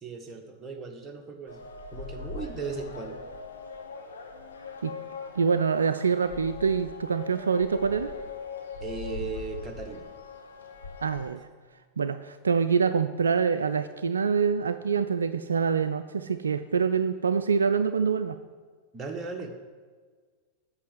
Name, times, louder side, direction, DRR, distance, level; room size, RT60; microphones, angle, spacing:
voice 1, 0.0-1.6 1.9-3.2 8.8-10.1 18.9-19.5, right 4 dB, 20° right, 2 dB, 1.3 m, -37 dB
sound 1, 1.5-11.3, left 4 dB, 70° left, 1.0 m, -41 dB
voice 2, 5.4-8.1 11.0-11.5 12.0-18.4, right 6 dB, 70° right, 11 dB, 0.3 m, -25 dB
8.4 x 6.3 x 7.7 m, 1.5 s
figure-of-eight pair, 90°, 0 cm